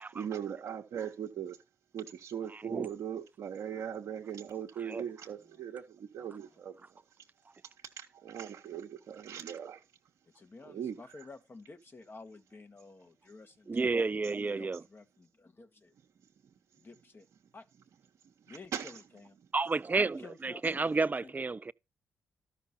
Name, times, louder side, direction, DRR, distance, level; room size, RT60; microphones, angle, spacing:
voice 1, 0.1-1.6 1.9-6.7 8.0-9.8 10.6-11.0 18.5-18.9, right 8 dB, 70° right, 1.0 m, -39 dB
voice 2, 2.5-2.9 4.8-5.0 13.7-14.8 19.5-21.7, right 3 dB, 30° right, 0.5 m, -31 dB
voice 3, 6.2-6.6 10.3-14.0 14.3-15.9 16.8-17.3 17.5-17.7 18.5-19.3 19.9-21.4, left 3 dB, 40° left, 1.5 m, -52 dB
12.5 x 5.8 x 4.3 m
supercardioid pair, 45°, 6 cm